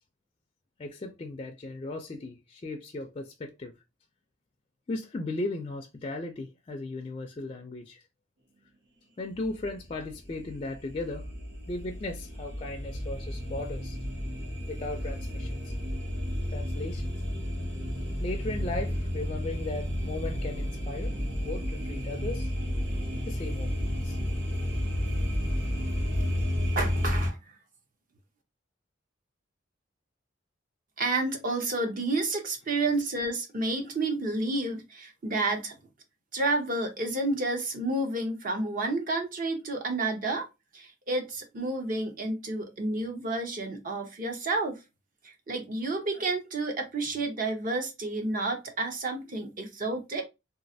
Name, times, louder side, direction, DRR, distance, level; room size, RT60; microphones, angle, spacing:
voice 1, 0.8-3.7 4.9-8.0 9.2-11.3 11.7-14.0 14.7-15.7 16.5-17.1 18.2-22.5 23.2-24.2, left 2 dB, 30° left, 0.3 m, -37 dB
sound 1, 9.4-27.3, equal, 75° right, 1.6 m, -32 dB
voice 2, 26.8-27.4 31.0-35.8 36.3-40.5 40.7-44.8 45.2-50.2, right 2 dB, 45° right, 0.7 m, -30 dB
3.1 x 2.4 x 2.6 m
head